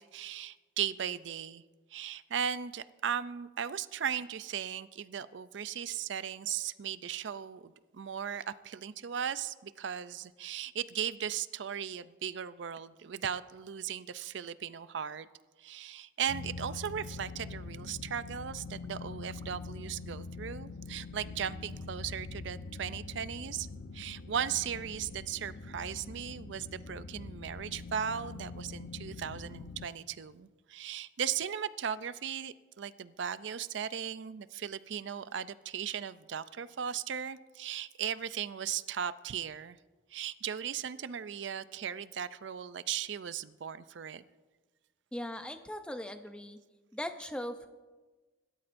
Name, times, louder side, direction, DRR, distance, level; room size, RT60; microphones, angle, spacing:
voice 1, 0.0-1.6 1.9-15.3 15.6-23.7 23.9-39.8 40.1-44.2, right 8 dB, 70° right, 14 dB, 0.4 m, -37 dB
sound 1, 16.3-29.9, left 3 dB, 90° left, 0.8 m, -44 dB
voice 2, 45.1-46.6 46.9-47.7, left 1 dB, 5° left, 8 dB, 0.6 m, -39 dB
26.0 x 13.0 x 2.6 m, 1.3 s
head